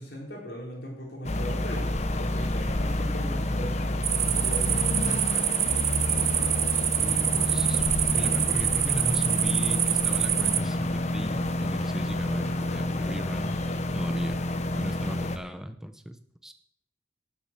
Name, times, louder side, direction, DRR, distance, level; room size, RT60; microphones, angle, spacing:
voice 1, 0.0-4.8, equal, 70° left, -2 dB, 4.4 m, -38 dB
sound 1, 1.2-15.4, left 1 dB, 40° left, 1.0 m, -29 dB
sound 2, 4.0-10.6, right 11 dB, 35° right, 0.6 m, -26 dB
voice 2, 7.0-7.9 8.1-13.6 13.9-14.4 14.7-16.5, equal, 5° right, 8 dB, 0.9 m, -36 dB
12.0 x 7.6 x 7.5 m, 0.71 s
head